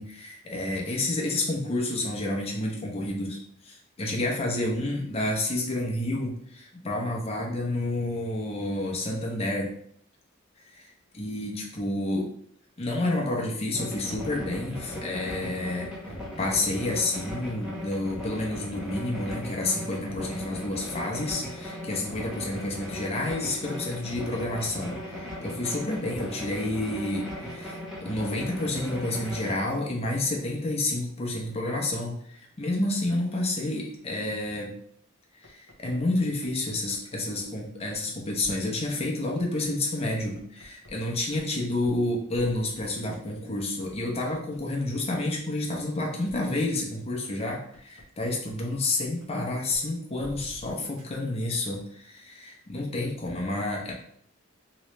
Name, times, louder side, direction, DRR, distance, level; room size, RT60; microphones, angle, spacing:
voice 1, 0.0-3.4 3.6-9.7 10.7-12.3 12.8-16.0 16.4-34.7 35.4-53.9, left 2 dB, 30° left, -1 dB, 0.8 m, -30 dB
sound 1, 13.7-29.6, left 1 dB, 5° right, 0.8 m, -38 dB
sound 2, 35.4-37.0 37.4-37.5 37.9-38.0 38.4-38.5 38.9-39.0 39.4-40.9 41.3-41.4 41.8-42.0 42.3-44.8 45.3-45.4 45.8-45.9 46.3-46.4 46.7-46.8 47.2-48.8 49.2-49.3 49.7-49.8 50.2-51.0, equal, 70° right, 1.1 m, -49 dB
3.1 x 3.0 x 3.1 m, 0.67 s
head